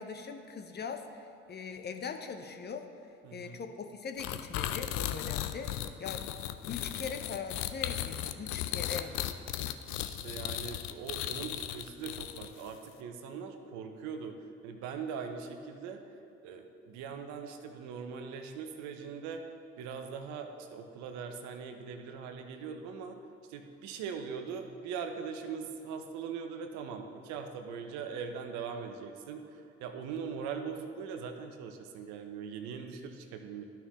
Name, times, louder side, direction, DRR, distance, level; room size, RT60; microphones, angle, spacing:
voice 1, 0.0-2.9 3.3-5.7 6.0-6.2 6.7-9.1, left 5 dB, 35° left, 6 dB, 0.7 m, -41 dB
voice 2, 3.2-3.6 9.9-14.4 14.6-16.0 16.4-19.4 19.8-23.2 23.5-33.7, right 6 dB, 65° right, 6 dB, 0.8 m, -41 dB
sound 1, 4.2-12.7, left 12 dB, 65° left, 0.5 m, -36 dB
12.5 x 5.8 x 3.0 m, 2.6 s
hypercardioid pair, 55°, 30 cm